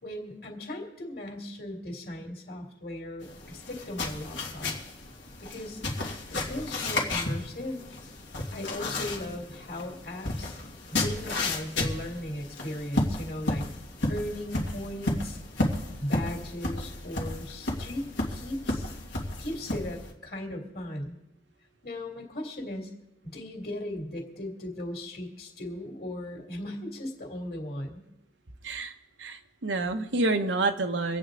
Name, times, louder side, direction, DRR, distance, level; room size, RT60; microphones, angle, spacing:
voice 1, 0.0-4.8 5.4-5.8 6.3-7.8 8.5-10.6 10.9-13.7 14.1-15.4 16.0-18.0 18.3-18.9 19.4-21.2 21.8-22.9 23.2-28.0, left 1 dB, 55° left, 1 dB, 2.7 m, -37 dB
sound 1, 3.2-20.1, left 2 dB, 90° left, 2.2 m, -33 dB
voice 2, 29.2-31.2, right 2 dB, 90° right, 6 dB, 1.1 m, -28 dB
25.5 x 8.6 x 3.9 m, 0.89 s
head